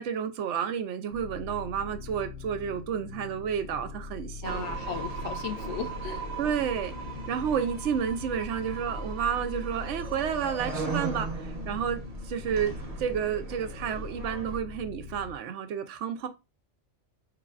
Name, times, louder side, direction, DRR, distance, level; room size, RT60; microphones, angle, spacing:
voice 1, 0.0-4.7 6.4-6.9 7.3-16.3, right 8 dB, 80° right, 0.9 m, -31 dB
sound 1, 1.1-15.4, left 4 dB, 60° left, 0.6 m, -43 dB
voice 2, 4.4-6.2, left 7 dB, 75° left, 1.0 m, -36 dB
sound 2, 4.4-14.6, right 3 dB, 35° right, 0.8 m, -37 dB
4.9 x 3.2 x 2.4 m
omnidirectional pair, 1.2 m